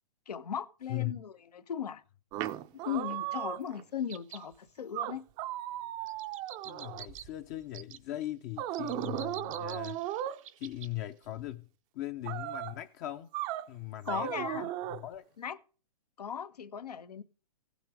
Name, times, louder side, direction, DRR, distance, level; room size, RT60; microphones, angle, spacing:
voice 1, 0.3-2.0 2.8-5.2 14.0-14.7 15.4-15.6 16.2-17.2, left 8 dB, 85° left, 1.3 m, -37 dB
voice 2, 0.9-1.2 6.6-10.0 10.6-11.7 11.9-13.3 13.7-15.2, left 14 dB, 30° left, 0.6 m, -39 dB
sound 1, 2.3-3.8 4.4-4.5 4.9-7.3 8.6-10.4 12.3-12.8 13.3-13.7 14.1-15.0, right 13 dB, 20° right, 0.5 m, -36 dB
sound 2, 4.1-4.4 6.1-7.2 7.7-8.0 8.7-10.9 11.2-11.3, right 10 dB, 55° right, 0.9 m, -47 dB
15.5 x 7.8 x 5.1 m
hypercardioid pair, 150°, 20 cm